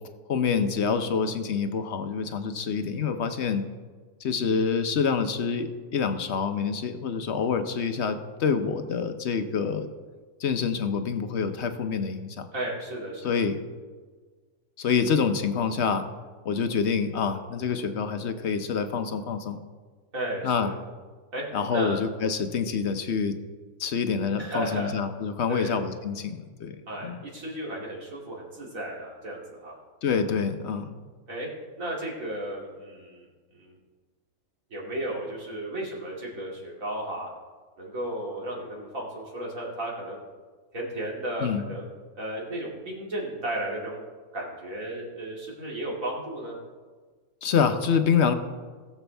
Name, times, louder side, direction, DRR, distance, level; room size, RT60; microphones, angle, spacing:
voice 1, 0.3-3.6 4.2-9.9 10.4-12.5 13.2-13.6 14.8-16.0 16.4-19.6 20.4-20.7 21.5-23.3 23.8-26.8 27.0-27.2 30.0-31.0 41.4-41.6 47.4-48.3, left 6 dB, 55° left, 8 dB, 1.0 m, -26 dB
voice 2, 12.5-13.4 20.1-20.8 21.3-21.4 21.7-22.0 24.4-24.9 25.5-25.8 26.9-29.8 31.3-31.5 31.8-33.3 33.5-33.7 34.7-37.3 37.8-40.2 40.7-41.8 42.1-44.0 44.3-46.6, right 1 dB, 60° right, -3 dB, 3.0 m, -34 dB
19.5 x 7.1 x 3.4 m, 1.4 s
omnidirectional pair, 1.6 m